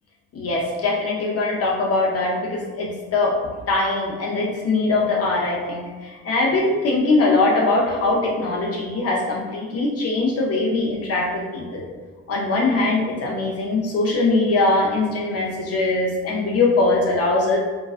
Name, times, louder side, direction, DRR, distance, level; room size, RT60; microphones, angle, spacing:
voice 1, 0.3-3.4 3.7-11.8 12.3-17.6, left 2 dB, 55° left, -3 dB, 0.5 m, -21 dB
2.4 x 2.2 x 2.3 m, 1.5 s
cardioid pair, 90°, 30 cm